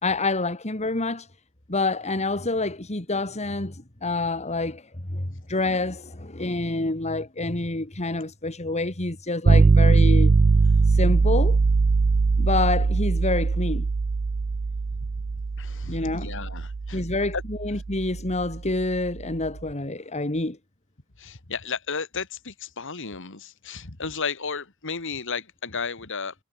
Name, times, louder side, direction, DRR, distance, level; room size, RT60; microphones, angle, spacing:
voice 1, 0.0-1.3 1.7-10.3 10.9-11.6 12.4-13.9 15.9-16.3 16.9-20.6, left 2 dB, 30° left, 2.3 m, -27 dB
sound 1, 9.5-19.3, right 4 dB, 40° right, 0.4 m, -21 dB
voice 2, 15.6-17.0 17.3-17.4 21.2-26.3, left 5 dB, 60° left, 2.5 m, -33 dB
head